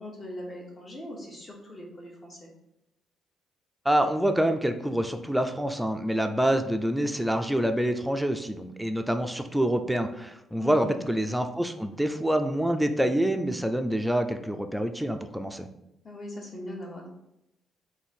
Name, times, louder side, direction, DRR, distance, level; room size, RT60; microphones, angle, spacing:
voice 1, 0.0-2.5 10.6-11.0 16.0-17.1, left 1 dB, 35° left, -1 dB, 1.2 m, -40 dB
voice 2, 3.9-15.7, right 1 dB, 5° right, 7 dB, 0.4 m, -26 dB
3.8 x 2.7 x 4.1 m, 0.87 s
cardioid pair, 90°, 0 cm